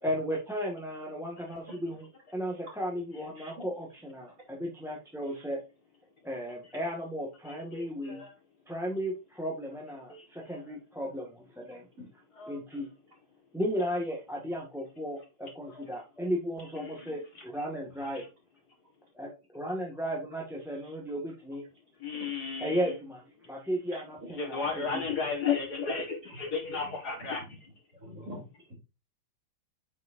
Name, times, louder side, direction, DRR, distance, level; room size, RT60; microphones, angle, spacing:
voice 1, 0.0-5.6 6.2-8.2 8.7-11.9 12.5-12.9 13.5-18.2 19.1-21.6 22.6-25.0, equal, ahead, 1.5 m, -35 dB
voice 2, 7.5-8.3 12.4-12.6 16.8-17.1 22.0-22.8 24.4-27.4, left 5 dB, 50° left, 2.0 m, -33 dB
voice 3, 23.9-24.3 26.3-26.4 26.7-26.9 27.9-28.7, equal, 40° right, 3.6 m, -46 dB
8.4 x 6.6 x 2.6 m
omnidirectional pair, 2.3 m